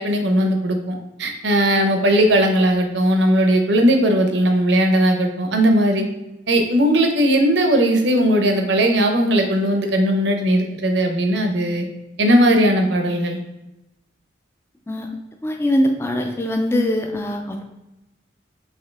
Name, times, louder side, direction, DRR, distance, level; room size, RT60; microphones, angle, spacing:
voice 1, 0.0-6.1 6.5-11.9 12.2-13.4, right 1 dB, 70° right, 4 dB, 0.7 m, -18 dB
voice 2, 15.4-17.6, left 1 dB, 15° left, 3 dB, 0.3 m, -22 dB
5.5 x 2.7 x 3.3 m, 0.97 s
head